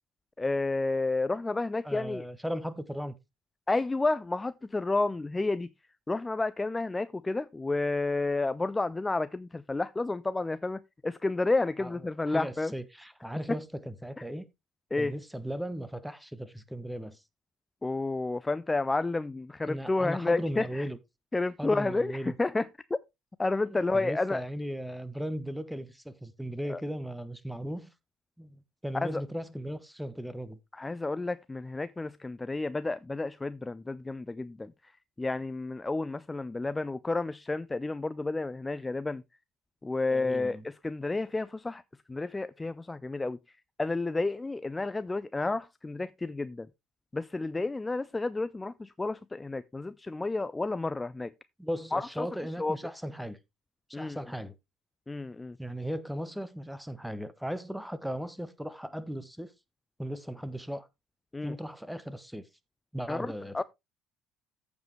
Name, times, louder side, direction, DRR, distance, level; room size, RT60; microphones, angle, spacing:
voice 1, 0.4-2.2 3.7-5.7 6.1-12.7 14.9-15.1 17.8-20.8 21.3-22.7 23.4-24.4 26.7-26.8 28.9-29.2 30.7-34.9 35.2-39.2 39.8-41.8 42.1-43.4 43.8-46.7 47.1-51.3 51.9-52.3 52.6-52.8 53.9-54.2 55.1-55.6 61.3-61.5 63.1-63.6, left 3 dB, 15° left, 0.4 m, -31 dB
voice 2, 1.8-3.1 11.8-14.5 15.0-17.2 19.7-21.0 21.6-22.3 23.7-27.9 28.4-30.6 40.1-40.7 51.6-53.4 53.9-54.5 55.6-59.5 60.0-60.9 61.4-62.5 62.9-63.6, equal, ahead, 1.1 m, -37 dB
14.5 x 5.2 x 3.2 m
figure-of-eight pair, 55°, 0 cm